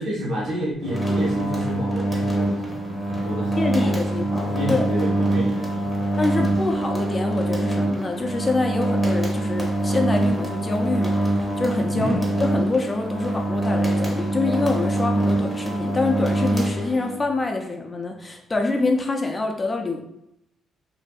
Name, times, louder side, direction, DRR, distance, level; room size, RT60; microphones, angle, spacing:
voice 1, 0.0-4.0 4.3-6.6 11.9-12.2, equal, 70° right, -4 dB, 1.0 m, -30 dB
sound 1, 0.8-17.3, right 1 dB, ahead, 0.8 m, -24 dB
voice 2, 3.6-4.8 6.2-20.0, left 3 dB, 25° left, 3 dB, 0.4 m, -26 dB
2.6 x 2.5 x 2.3 m, 0.80 s
cardioid pair, 90°, 0 cm